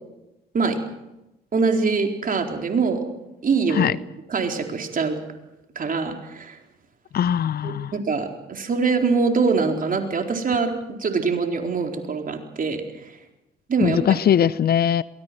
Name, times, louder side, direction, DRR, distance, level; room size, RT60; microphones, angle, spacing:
voice 1, 1.5-3.0 3.4-4.0 4.3-5.2 5.8-6.6 7.6-12.8 13.7-14.2, right 4 dB, 45° right, 3 dB, 4.3 m, -23 dB
voice 2, 7.1-7.9 13.8-15.0, left 9 dB, 50° left, 19 dB, 0.7 m, -20 dB
23.0 x 19.0 x 7.8 m, 0.94 s
hypercardioid pair, 55°, 20 cm